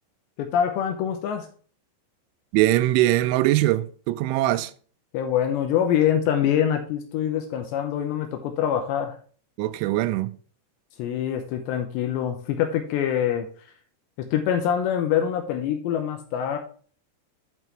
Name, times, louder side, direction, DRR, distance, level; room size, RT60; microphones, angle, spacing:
voice 1, 0.4-1.5 5.1-9.1 11.0-13.5 14.2-16.6, left 9 dB, 80° left, 3.0 m, -25 dB
voice 2, 2.5-4.7 9.6-10.4, right 15 dB, 90° right, 3.0 m, -22 dB
10.5 x 5.6 x 3.1 m
omnidirectional pair, 5.3 m